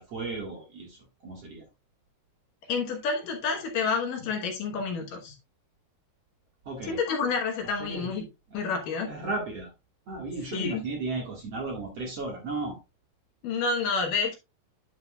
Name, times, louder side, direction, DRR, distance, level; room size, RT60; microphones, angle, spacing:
voice 1, 0.0-1.6 6.7-7.0 7.6-8.1 9.1-9.7 10.1-12.8, right 3 dB, 50° right, 2.3 m, -35 dB
voice 2, 2.7-5.4 6.8-8.2 8.5-9.1 10.5-10.8 13.4-14.4, left 5 dB, 65° left, 2.6 m, -29 dB
9.2 x 7.4 x 2.3 m
omnidirectional pair, 4.5 m